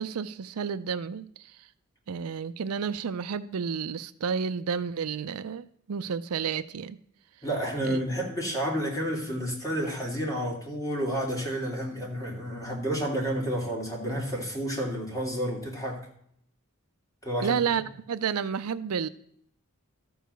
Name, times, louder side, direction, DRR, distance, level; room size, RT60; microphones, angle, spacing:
voice 1, 0.0-1.5 2.1-7.0 7.8-8.0 17.4-19.1, right 6 dB, 75° right, 13 dB, 0.5 m, -31 dB
voice 2, 7.4-16.0 17.2-17.6, equal, 15° left, -1 dB, 2.7 m, -30 dB
13.5 x 4.7 x 6.8 m, 0.67 s
head